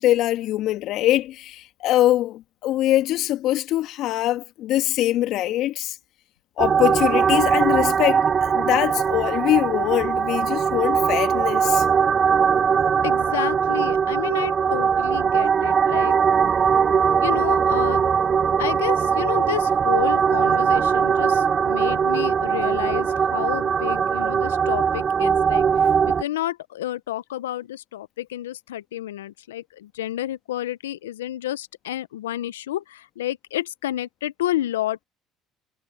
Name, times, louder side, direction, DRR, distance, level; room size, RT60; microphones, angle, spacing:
voice 1, 0.0-6.0 6.6-11.9, left 14 dB, 65° left, 1.9 m, -23 dB
sound 1, 6.6-26.2, right 7 dB, 40° right, 3.0 m, -20 dB
voice 2, 13.0-16.1 17.2-18.0 18.6-35.0, left 13 dB, 90° left, 0.8 m, -30 dB
hypercardioid pair, 65°, 0 cm